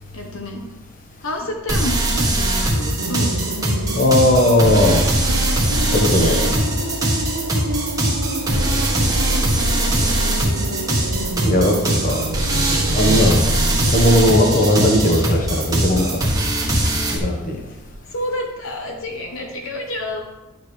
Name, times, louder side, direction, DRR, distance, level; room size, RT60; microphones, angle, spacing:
voice 1, 0.1-0.6 1.2-3.4 8.4-8.8 9.4-9.7 10.0-10.2 18.1-20.2, left 1 dB, 65° left, 2 dB, 1.1 m, -29 dB
sound 1, 1.7-17.2, right 1 dB, 15° right, 1.2 m, -21 dB
sound 2, 3.0-13.9, right 1 dB, 90° right, 0.9 m, -29 dB
voice 2, 4.0-5.0 5.9-6.5 11.4-12.3 12.7-13.4 13.9-16.2 17.1-17.6, left 1 dB, 35° left, 1 dB, 1.2 m, -17 dB
10.5 x 6.6 x 3.3 m, 1.0 s
head